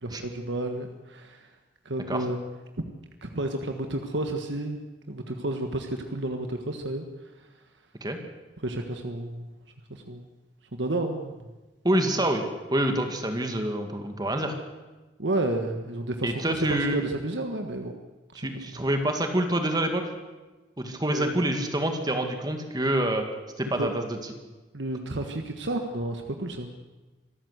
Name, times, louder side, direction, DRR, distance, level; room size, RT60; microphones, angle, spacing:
voice 1, 0.0-1.5 1.8-2.4 3.2-4.8 5.1-7.0 8.6-9.5 9.9-10.3 10.7-11.4 15.2-17.9 18.3-18.6 21.1-21.3 23.8-23.9 24.7-26.7, right 1 dB, 80° right, 5 dB, 1.5 m, -31 dB
voice 2, 11.8-14.5 16.2-17.0 18.4-20.0 20.8-23.3 23.6-24.2, right 1 dB, 25° right, 5 dB, 2.0 m, -27 dB
25.5 x 14.0 x 8.1 m, 1.2 s
head